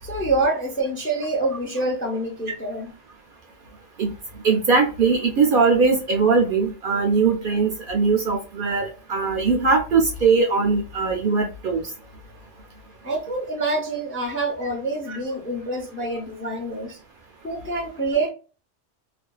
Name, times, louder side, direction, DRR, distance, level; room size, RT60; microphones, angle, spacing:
voice 1, 0.0-2.9 13.0-17.0 17.4-18.3, right 2 dB, 15° left, 0 dB, 0.4 m, -26 dB
voice 2, 4.4-11.8 15.1-15.2, right 4 dB, 60° right, 3 dB, 0.6 m, -20 dB
2.5 x 2.2 x 2.3 m, 0.36 s
omnidirectional pair, 1.2 m